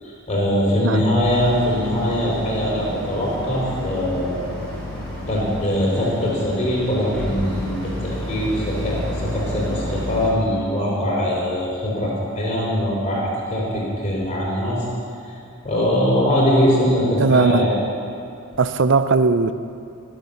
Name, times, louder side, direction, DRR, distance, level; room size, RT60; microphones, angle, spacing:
voice 1, 0.0-4.5 5.3-14.8 15.6-17.8, equal, 30° left, -4 dB, 3.7 m, -22 dB
Boat Water vehicle, 1.2-10.3, left 1 dB, 5° left, 3.9 m, -31 dB
voice 2, 17.2-17.7 18.6-19.5, right 4 dB, 55° right, 12 dB, 0.5 m, -18 dB
19.0 x 7.4 x 7.0 m, 2.4 s
head